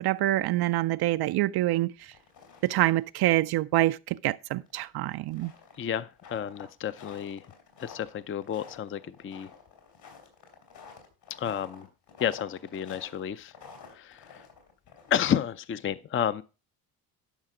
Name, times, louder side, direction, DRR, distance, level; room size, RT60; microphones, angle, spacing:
voice 1, 0.0-1.9 2.6-5.5, right 16 dB, 65° right, 0.5 m, -26 dB
sound 1, 2.0-3.0 3.3-3.4 3.8-3.9 4.7-15.4, left 6 dB, 70° left, 4.1 m, -50 dB
voice 2, 5.8-7.5 7.8-9.5 11.4-11.9 12.2-13.5 13.9-14.4 15.1-16.4, left 9 dB, 30° left, 0.5 m, -31 dB
12.0 x 5.6 x 4.9 m
supercardioid pair, 80°, 42 cm